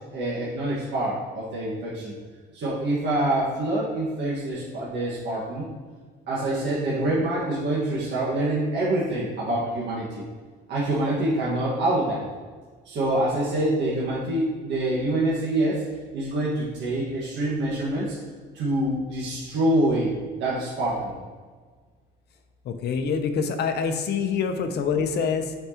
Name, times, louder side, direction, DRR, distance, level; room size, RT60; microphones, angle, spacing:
voice 1, 0.1-2.1 2.5-5.7 6.3-10.3 10.7-12.2 12.8-15.8 16.1-18.1 18.5-20.1 20.4-21.2, right 1 dB, 70° right, -7 dB, 1.6 m, -26 dB
voice 2, 22.6-25.5, left 6 dB, 60° left, 7 dB, 0.7 m, -25 dB
9.1 x 4.5 x 2.9 m, 1.5 s
cardioid pair, 140°, 19 cm